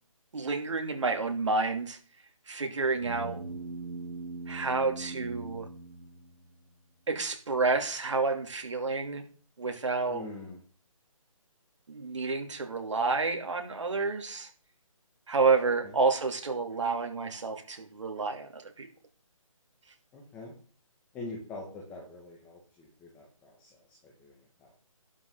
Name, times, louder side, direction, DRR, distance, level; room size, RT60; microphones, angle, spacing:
voice 1, 0.3-2.0 2.5-3.4 4.5-5.7 7.1-9.2 9.6-10.2 11.9-14.5 15.3-18.9, right 4 dB, 60° right, 4 dB, 2.8 m, -29 dB
sound 1, 3.0-6.7, right 3 dB, 75° right, 2.0 m, -40 dB
voice 2, 10.1-10.6 15.8-16.0 20.1-20.5 21.1-24.8, left 2 dB, 10° left, -2 dB, 1.8 m, -44 dB
12.0 x 9.4 x 3.9 m, 0.40 s
hypercardioid pair, 165°, 18 cm